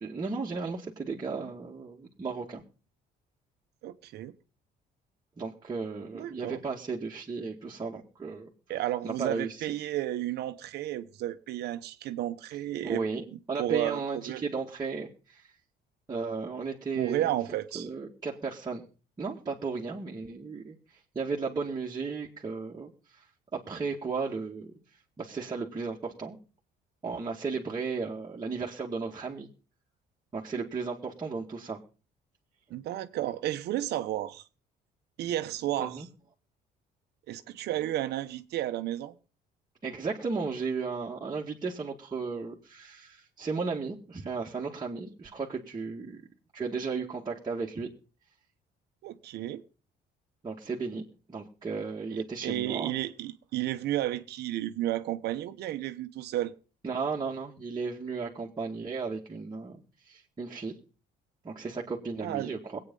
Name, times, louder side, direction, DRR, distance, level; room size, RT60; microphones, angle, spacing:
voice 1, 0.0-2.6 5.4-8.5 9.0-9.7 12.8-15.5 16.1-17.4 17.7-18.8 19.2-20.7 21.1-23.3 23.5-24.7 25.2-26.4 27.0-29.5 30.3-31.8 35.8-36.1 39.8-46.2 46.5-47.9 50.4-51.0 51.3-52.9 56.8-59.8 60.0-60.7 61.4-62.8, right 4 dB, 25° right, 2.1 m, -35 dB
voice 2, 3.8-4.3 6.1-6.6 8.7-13.0 13.6-14.4 17.0-17.9 32.7-34.5 35.2-36.1 37.3-39.1 49.0-49.6 52.1-56.5 62.2-62.5, right 13 dB, 75° right, 1.1 m, -32 dB
20.0 x 8.9 x 5.5 m
cardioid pair, 110°, 17 cm